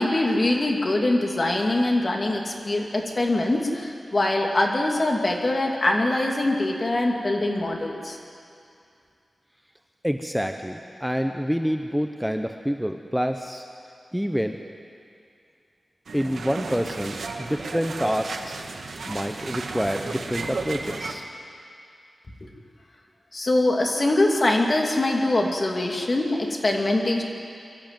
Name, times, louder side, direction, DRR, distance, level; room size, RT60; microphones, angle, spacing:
voice 1, 0.0-8.2 22.4-22.5 23.3-27.2, left 2 dB, 40° left, 1 dB, 2.5 m, -23 dB
voice 2, 10.0-13.7 14.1-14.6 16.1-18.6 19.1-21.3, equal, ahead, 5 dB, 0.8 m, -27 dB
sound 1, 16.1-21.1, right 3 dB, 85° right, 1.6 m, -34 dB
23.5 x 13.0 x 9.1 m, 2.4 s
wide cardioid pair, 105°, 0 cm